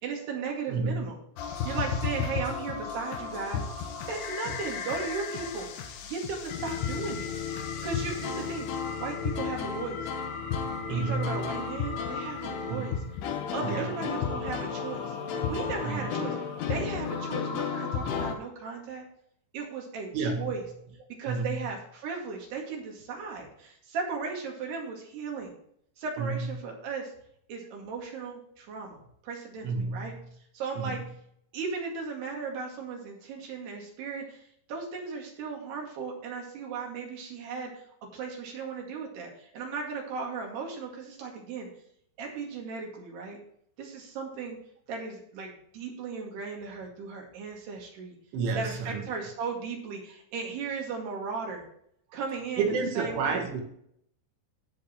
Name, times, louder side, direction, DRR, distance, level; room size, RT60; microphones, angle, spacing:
voice 1, 0.0-1.2 1.6-3.6 4.1-5.7 6.0-7.4 7.8-8.7 9.0-10.1 10.9-12.9 13.5-15.2 15.5-16.4 16.7-19.0 19.5-20.6 21.2-25.5 26.0-27.1 27.5-30.1 30.5-31.0 31.5-34.4 34.7-37.8 38.1-41.7 42.2-43.4 43.8-44.6 44.9-48.2 48.6-51.7 52.1-53.5, right 5 dB, 65° right, 0 dB, 4.1 m, -36 dB
voice 2, 0.7-1.1 10.9-11.5 12.7-12.9 13.6-13.9 15.8-16.1 20.1-20.5 21.3-21.6 26.2-26.5 29.6-30.2 30.8-31.0 48.3-49.0 52.6-53.6, right 4 dB, 90° right, 3 dB, 4.3 m, -30 dB
sound 1, 1.4-18.4, left 6 dB, 70° left, 2.8 m, -33 dB
16.5 x 6.5 x 3.0 m, 0.69 s
omnidirectional pair, 5.4 m